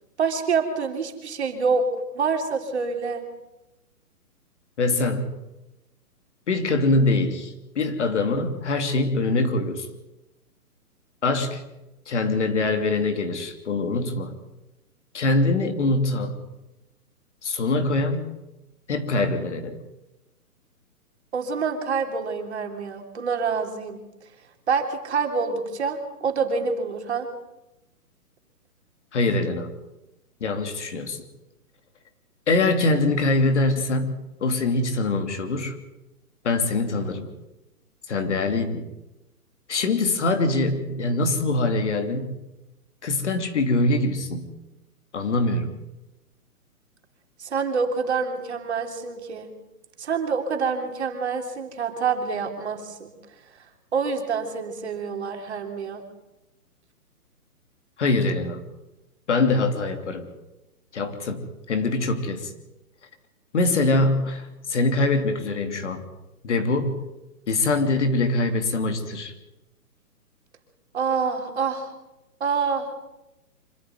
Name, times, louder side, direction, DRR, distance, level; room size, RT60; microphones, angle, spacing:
voice 1, 0.2-1.9 2.1-3.2 21.3-24.0 24.7-27.3 47.4-49.5 50.0-53.1 53.9-56.0 70.9-71.9 72.4-72.9, right 5 dB, 45° right, 4 dB, 3.5 m, -26 dB
voice 2, 4.8-5.3 6.5-9.9 11.2-11.6 12.1-14.3 15.1-16.3 17.4-18.3 18.9-19.8 29.1-29.7 30.4-31.2 32.5-35.8 36.4-37.3 38.1-38.8 39.7-42.3 43.0-44.5 45.1-45.7 58.0-58.6 59.3-60.3 60.9-62.5 63.5-66.0 66.4-67.0 67.5-69.3, left 2 dB, 50° left, 7 dB, 3.1 m, -23 dB
25.5 x 14.0 x 9.4 m, 0.96 s
hypercardioid pair, 175°, 46 cm